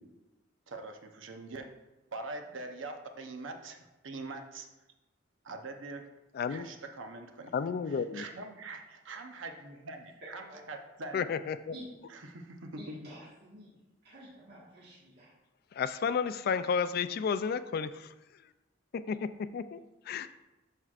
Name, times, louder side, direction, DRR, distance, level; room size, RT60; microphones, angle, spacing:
voice 1, 0.7-1.7 2.1-4.7 5.4-6.0 6.5-7.5 8.1-11.3 12.3-13.1, right 2 dB, 85° right, 5 dB, 0.8 m, -43 dB
voice 2, 6.3-6.7 7.5-8.2 11.1-11.7 15.7-18.1 18.9-19.8 20.1-20.3, left 6 dB, 55° left, 13 dB, 0.3 m, -32 dB
voice 3, 10.2-10.6 11.7-11.9 12.8-13.7 14.0-15.3, equal, 60° right, -8 dB, 1.6 m, -50 dB
12.0 x 4.5 x 2.4 m, 1.0 s
head